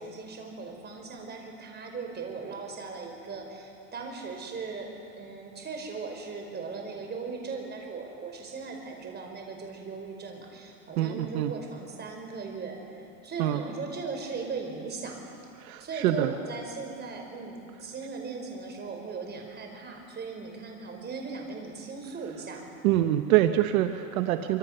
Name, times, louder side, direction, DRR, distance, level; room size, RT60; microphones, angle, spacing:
voice 1, 0.0-4.9 5.2-15.2 15.8-22.6, right 4 dB, 25° right, 2 dB, 5.2 m, -38 dB
voice 2, 11.0-11.5 13.4-13.6 15.6-16.3 22.8-24.6, right 13 dB, 70° right, 8 dB, 1.3 m, -25 dB
25.5 x 25.0 x 6.8 m, 2.5 s
supercardioid pair, 125°, 43 cm